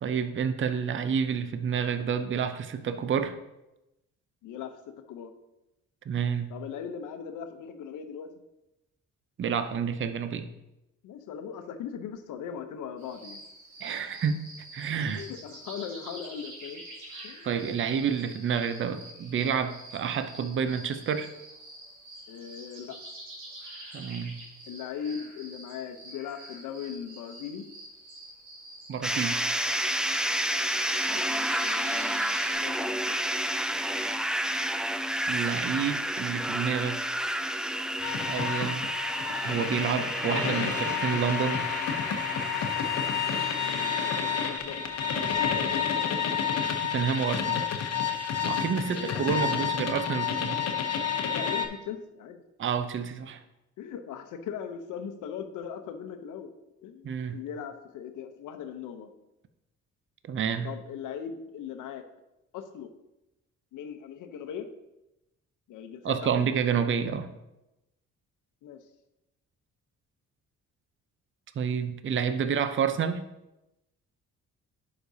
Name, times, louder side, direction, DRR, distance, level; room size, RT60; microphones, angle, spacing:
voice 1, 0.0-3.3 6.1-6.5 9.4-10.5 13.8-14.4 14.7-15.3 17.4-21.3 23.9-24.4 28.9-29.4 35.3-37.0 38.2-38.9 39.4-41.7 46.8-47.7 48.4-50.6 52.6-53.4 57.0-57.4 60.2-60.7 66.0-67.3 71.6-73.2, right 7 dB, 40° right, 9 dB, 0.6 m, -29 dB
voice 2, 4.4-5.3 6.5-8.3 11.0-13.4 15.1-16.8 17.2-17.5 22.3-23.0 24.7-27.6 31.1-33.0 43.6-44.8 45.1-46.5 48.9-49.6 51.3-52.4 53.8-56.5 56.8-59.1 60.6-62.0 62.5-62.9 63.7-64.7 65.7-66.4 68.6-68.8, left 8 dB, 85° left, 8 dB, 0.8 m, -39 dB
sound 1, 13.0-32.5, right 1 dB, 75° right, 2.8 m, -47 dB
sound 2, 29.0-44.6, right 1 dB, ahead, 0.3 m, -31 dB
sound 3, 38.0-51.7, left 7 dB, 55° left, 0.9 m, -30 dB
11.0 x 5.1 x 2.7 m, 0.94 s
cardioid pair, 90°, 30 cm